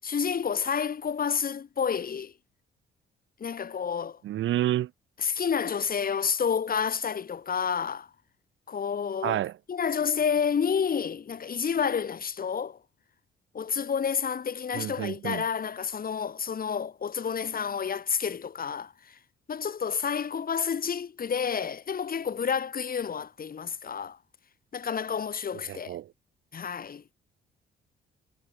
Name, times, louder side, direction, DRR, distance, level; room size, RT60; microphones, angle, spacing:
voice 1, 0.0-2.3 3.4-4.2 5.2-8.1 8.7-9.4 9.7-12.8 13.5-19.2 19.5-24.2 24.7-26.0 26.5-27.0, left 7 dB, 45° left, 6.1 m, -29 dB
voice 2, 4.2-4.9 9.2-9.5 14.7-15.4 25.7-26.1, right 13 dB, 75° right, 1.9 m, -29 dB
cardioid pair, 90°, 20 cm